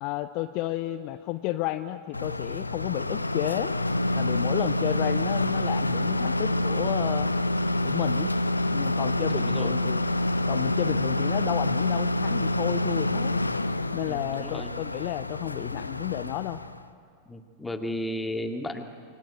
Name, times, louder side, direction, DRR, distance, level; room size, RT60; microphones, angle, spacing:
voice 1, 0.0-3.7 4.1-7.3 7.8-8.3 8.7-10.1 10.5-13.4 13.9-16.6, left 16 dB, 45° left, 12 dB, 0.7 m, -31 dB
sound 1, 2.1-16.8, left 1 dB, 85° left, 0.8 m, -27 dB
voice 2, 9.2-9.8 14.1-14.8 17.3-18.8, left 1 dB, 10° left, 5 dB, 2.1 m, -34 dB
28.0 x 23.0 x 9.0 m, 2.2 s
figure-of-eight pair, 90°, 0 cm